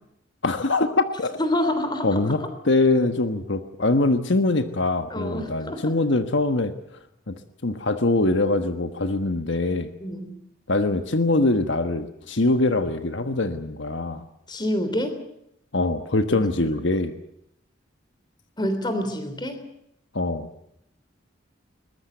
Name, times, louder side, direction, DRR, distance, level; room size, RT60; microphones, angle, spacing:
voice 1, 0.4-1.4 2.0-6.7 7.3-7.4 7.6-9.9 10.7-14.2 15.7-17.1 20.1-20.5, left 2 dB, 75° left, 9 dB, 1.3 m, -23 dB
voice 2, 1.4-2.3 5.1-6.0 10.0-10.3 14.5-15.2 16.3-16.7 18.6-19.6, left 1 dB, 20° left, 9 dB, 3.4 m, -27 dB
22.5 x 20.5 x 7.9 m, 0.77 s
head